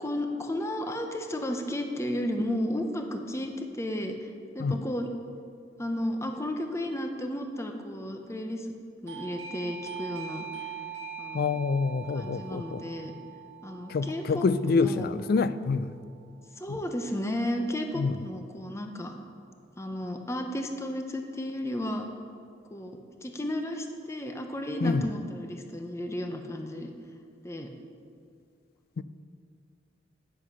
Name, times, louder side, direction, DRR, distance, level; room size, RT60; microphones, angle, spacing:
voice 1, 0.0-4.3 4.5-5.1 5.8-8.7 9.0-10.5 11.2-11.6 12.1-13.1 13.6-15.1 16.6-19.1 19.8-22.1 22.7-26.9 27.4-27.7, left 1 dB, 15° left, 4 dB, 0.7 m, -33 dB
Doorbell, 9.1-15.5, right 7 dB, 70° right, 1.2 m, -42 dB
voice 2, 11.3-12.8 13.9-15.9 17.9-18.2 24.8-25.1 29.0-29.1, left 4 dB, 55° left, 14 dB, 0.4 m, -27 dB
9.9 x 7.5 x 5.6 m, 2.4 s
head